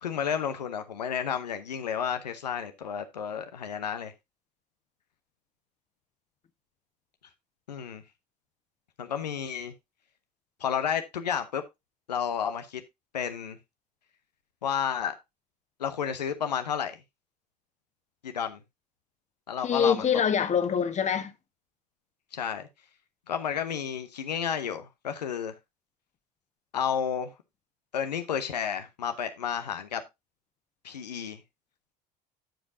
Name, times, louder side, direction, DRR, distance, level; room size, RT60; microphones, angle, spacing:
voice 1, 0.0-4.1 7.7-8.0 9.0-9.7 10.6-11.6 12.1-12.8 13.1-13.6 14.6-15.1 15.8-17.0 18.2-18.6 19.5-20.1 22.3-22.7 23.3-25.6 26.7-27.3 27.9-30.0 30.8-31.4, left 8 dB, 85° left, 0.7 m, -31 dB
voice 2, 19.6-21.3, left 7 dB, 35° left, 1.2 m, -25 dB
15.0 x 5.1 x 2.6 m
hypercardioid pair, 65°, 21 cm